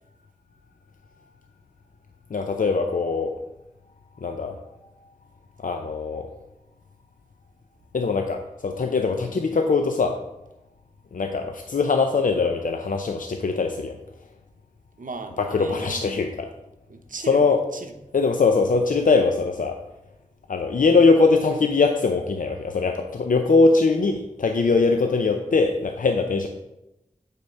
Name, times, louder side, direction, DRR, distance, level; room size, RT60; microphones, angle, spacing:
voice 1, 2.3-3.3 4.2-4.6 5.6-6.3 7.9-10.2 11.1-14.0 15.4-16.5 17.3-17.6 18.1-19.8 20.5-26.5, left 4 dB, 85° left, 4 dB, 0.5 m, -21 dB
voice 2, 15.0-16.1 16.9-17.9, right 3 dB, 85° right, 6 dB, 0.7 m, -38 dB
8.1 x 4.2 x 5.3 m, 0.92 s
wide cardioid pair, 45°, 13 cm